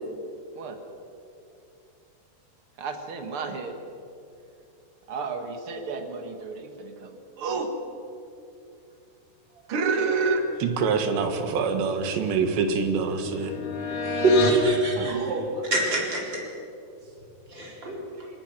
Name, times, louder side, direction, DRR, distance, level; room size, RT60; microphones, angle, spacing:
voice 1, 2.8-3.7 5.1-7.7 9.7-10.4 15.0-15.7, right 4 dB, 70° right, 6 dB, 1.2 m, -30 dB
voice 2, 10.6-13.5, right 5 dB, 90° right, 7 dB, 3.9 m, -25 dB
sound 1, 11.5-14.7, left 4 dB, 40° left, 3.1 m, -31 dB
voice 3, 14.1-15.1 15.7-16.4 17.5-18.0, right 1 dB, 25° right, -1 dB, 4.6 m, -24 dB
26.5 x 21.0 x 6.1 m, 2.7 s
omnidirectional pair, 4.9 m